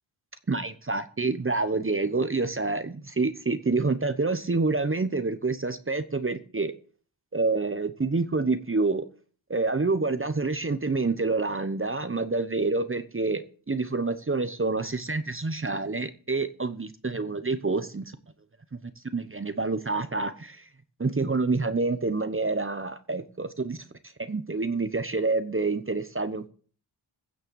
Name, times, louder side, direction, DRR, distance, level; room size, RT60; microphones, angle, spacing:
voice 1, 0.5-6.7 7.3-9.0 9.5-18.2 18.7-18.8 19.1-20.7 21.0-23.8 24.2-26.5, right 3 dB, 25° right, 11 dB, 1.0 m, -27 dB
16.0 x 6.5 x 7.0 m, 0.43 s
cardioid pair, 60°, 48 cm